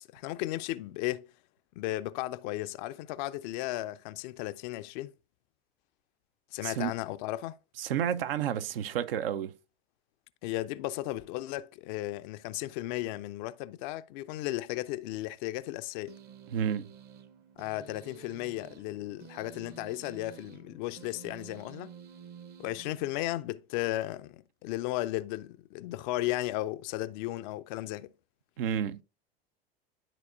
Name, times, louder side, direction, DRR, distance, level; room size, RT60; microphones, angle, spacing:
voice 1, 0.0-1.3 1.8-5.1 6.5-7.6 10.4-16.2 17.6-21.9 22.6-28.1, left 16 dB, 45° left, 0.5 m, -35 dB
voice 2, 6.6-6.9 7.8-9.5 16.5-16.9 28.6-29.0, right 9 dB, 65° right, 0.7 m, -30 dB
sound 1, 16.1-23.5, right 7 dB, 30° right, 0.8 m, -51 dB
12.0 x 4.1 x 2.5 m
figure-of-eight pair, 85°, 31 cm